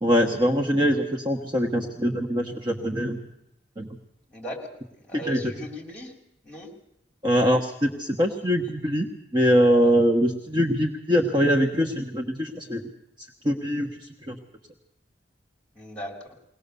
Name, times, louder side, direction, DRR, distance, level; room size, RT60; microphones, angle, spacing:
voice 1, 0.0-3.2 3.8-3.9 5.1-5.4 7.2-9.1 9.3-12.8 13.4-13.9 14.3-14.4, equal, 25° right, 2 dB, 1.2 m, -23 dB
voice 2, 4.3-4.7 5.0-6.1 6.4-6.7 15.8-16.2, equal, 5° left, 1 dB, 3.8 m, -37 dB
21.5 x 18.5 x 6.9 m, 0.83 s
head